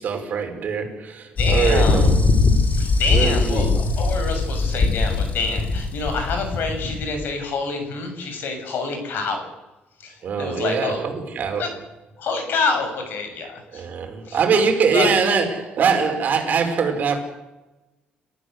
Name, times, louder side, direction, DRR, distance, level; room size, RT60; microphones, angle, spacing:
voice 1, 0.0-2.2 3.1-3.7 10.2-11.7 13.7-17.2, right 5 dB, 50° right, 5.6 m, -22 dB
voice 2, 1.4-2.1 2.7-9.5 10.0-11.0 11.6-11.7 12.2-13.9 14.3-14.4 14.9-15.1, left 4 dB, 65° left, 6.9 m, -27 dB
sound 1, 1.4-7.2, left 3 dB, 45° left, 4.3 m, -21 dB
29.5 x 14.5 x 8.2 m
cardioid pair, 135°, 4 cm